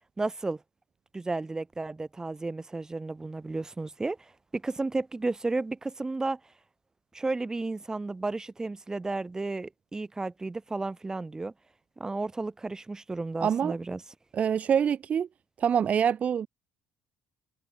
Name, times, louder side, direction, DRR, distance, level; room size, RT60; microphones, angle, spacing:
voice 1, 0.2-0.6 1.1-6.4 7.1-11.5 12.0-14.0, right 3 dB, 15° right, 3.1 m, -33 dB
voice 2, 13.4-13.7 14.3-15.3 15.6-16.5, right 8 dB, 40° right, 0.8 m, -25 dB
figure-of-eight pair, 55°, 4 cm